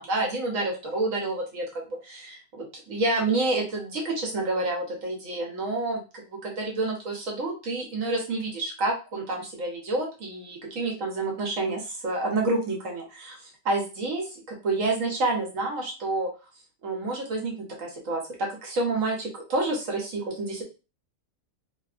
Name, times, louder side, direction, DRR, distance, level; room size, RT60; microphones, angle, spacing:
voice 1, 0.0-1.6 2.0-16.3 16.8-17.5 17.8-20.6, right 2 dB, 70° right, 0 dB, 1.1 m, -29 dB
3.0 x 2.5 x 2.4 m, 0.32 s
omnidirectional pair, 1.4 m